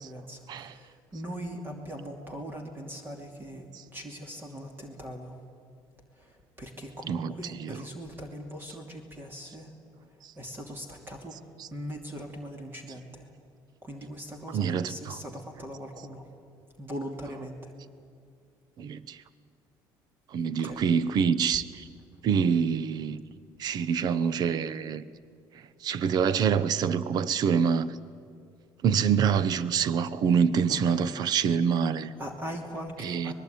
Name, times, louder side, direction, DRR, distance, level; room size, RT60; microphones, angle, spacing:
voice 1, 0.0-3.7 3.9-5.4 6.2-9.7 10.4-11.4 11.7-13.3 13.8-16.3 16.8-17.7 20.6-20.8 30.7-31.1 32.2-33.3, equal, 25° right, 2.8 m, -40 dB
voice 2, 7.1-7.8 10.2-10.3 11.3-11.7 14.5-15.2 17.3-17.4 18.8-19.2 20.3-21.8 22.2-23.2 23.6-25.1 25.8-28.0 28.8-32.1 33.0-33.3, right 7 dB, 50° right, 1.0 m, -26 dB
26.0 x 20.5 x 9.3 m
cardioid pair, 135°, 9 cm